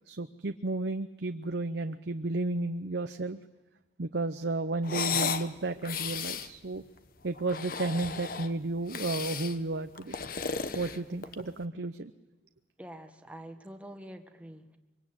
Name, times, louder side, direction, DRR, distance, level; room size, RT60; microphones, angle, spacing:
voice 1, 0.1-3.4 4.0-6.8 7.2-10.2 10.7-12.1, right 2 dB, 70° right, 8 dB, 0.8 m, -33 dB
sound 1, 4.8-5.5 5.8-6.5 7.4-8.5 8.9-9.6 10.0-11.5, left 6 dB, 50° left, 1.2 m, -34 dB
voice 2, 12.8-14.8, right 1 dB, 5° right, 5 dB, 1.7 m, -46 dB
25.0 x 23.5 x 9.0 m, 1.1 s
head